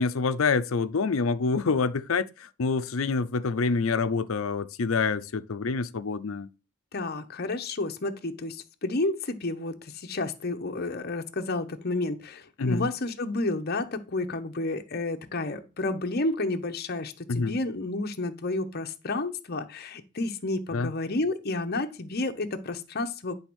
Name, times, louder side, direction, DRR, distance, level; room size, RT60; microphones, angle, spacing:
voice 1, 0.0-6.5 12.6-12.9 17.3-17.5 20.7-20.9, left 4 dB, 80° left, 0.6 m, -27 dB
voice 2, 6.9-23.3, left 2 dB, 50° left, 0.9 m, -31 dB
9.9 x 3.5 x 6.2 m
head